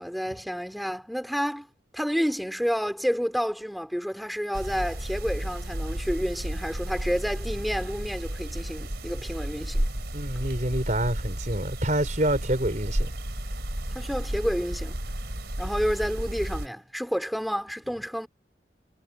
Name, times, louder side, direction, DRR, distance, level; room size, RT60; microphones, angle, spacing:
voice 1, 0.0-1.7 1.9-9.9 13.9-15.0 15.6-18.3, equal, ahead, 4.0 m, -29 dB
sound 1, 4.5-16.7, right 1 dB, 65° right, 3.9 m, -32 dB
voice 2, 10.1-13.1, right 1 dB, 40° right, 5.6 m, -27 dB
head